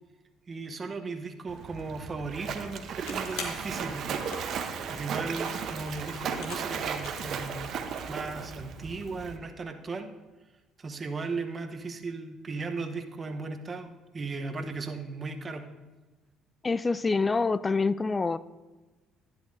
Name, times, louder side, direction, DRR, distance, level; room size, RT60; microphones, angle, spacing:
voice 1, 0.5-2.8 3.1-4.5 4.9-7.6 8.1-10.1 10.8-15.7, right 3 dB, 35° right, 7 dB, 0.9 m, -36 dB
Splash splatter, 1.5-9.4, right 6 dB, 60° right, 0.8 m, -35 dB
sound 1, 2.7-7.4, left 4 dB, 80° left, 1.3 m, -44 dB
voice 2, 16.6-18.4, left 4 dB, 25° left, 17 dB, 0.3 m, -26 dB
11.5 x 9.9 x 2.7 m, 1.2 s
hypercardioid pair, 65°, 0 cm